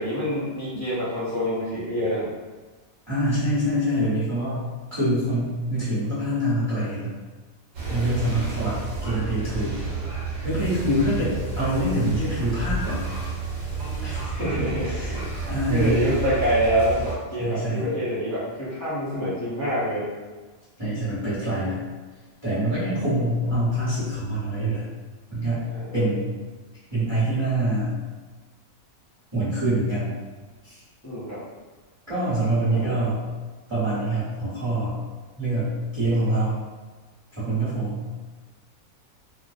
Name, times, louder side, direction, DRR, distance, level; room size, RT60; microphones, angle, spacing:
voice 1, 0.0-2.3 7.8-8.6 14.3-20.1 22.9-23.0 25.7-25.9 31.0-31.4 32.7-33.0, equal, 25° left, -11 dB, 0.3 m, -27 dB
voice 2, 3.1-4.6 4.9-7.2 7.9-9.8 10.4-13.0 14.0-15.2 15.5-16.0 17.4-17.9 20.8-21.8 22.4-24.9 25.3-26.4 26.9-27.9 29.3-30.2 30.6-30.8 32.1-33.2 33.7-35.0 35.4-36.6 37.4-38.1, right 1 dB, 20° right, -13 dB, 1.0 m, -25 dB
sound 1, 7.7-17.1, right 4 dB, 70° right, 1.0 m, -31 dB
2.4 x 2.1 x 2.5 m, 1.3 s
omnidirectional pair, 1.5 m